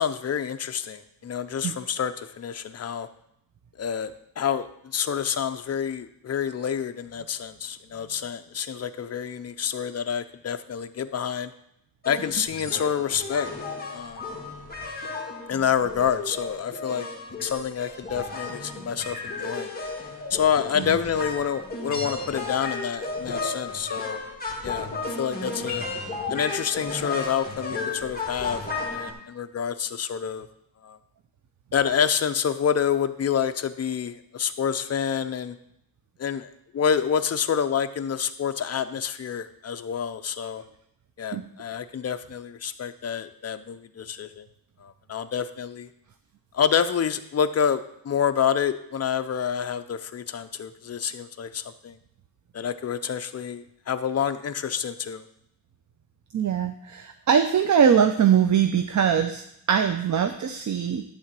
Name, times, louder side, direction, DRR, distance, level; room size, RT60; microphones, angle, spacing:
voice 1, 0.0-3.1 3.8-4.7 4.9-11.5 12.0-13.5 13.9-14.2 15.5-17.1 17.4-19.7 20.3-24.2 24.6-24.9 25.2-25.8 26.3-28.6 28.9-30.5 30.8-31.0 31.7-35.6 36.2-40.6 41.2-44.4 44.8-45.9 46.5-52.0 52.5-55.2, left 7 dB, 40° left, 9 dB, 0.6 m, -28 dB
sound 1, 12.0-29.1, left 3 dB, 20° left, 1.8 m, -34 dB
voice 2, 56.3-59.4 59.7-61.0, right 8 dB, 45° right, 8 dB, 0.5 m, -22 dB
11.5 x 3.8 x 7.4 m, 0.77 s
wide cardioid pair, 135°, 41 cm